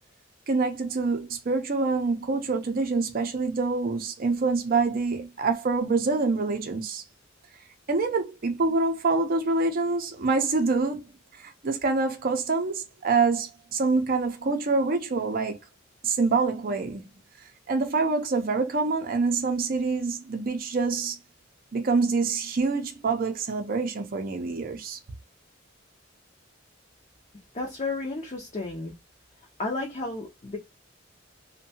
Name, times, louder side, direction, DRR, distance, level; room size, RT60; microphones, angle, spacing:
voice 1, 0.5-7.0 7.9-11.0 11.4-15.6 16.0-17.1 17.7-21.2 21.7-25.0, right 4 dB, 45° right, 0.5 m, -26 dB
voice 2, 27.5-28.9 29.6-30.6, left 3 dB, 35° left, 0.5 m, -32 dB
2.6 x 2.2 x 2.7 m
head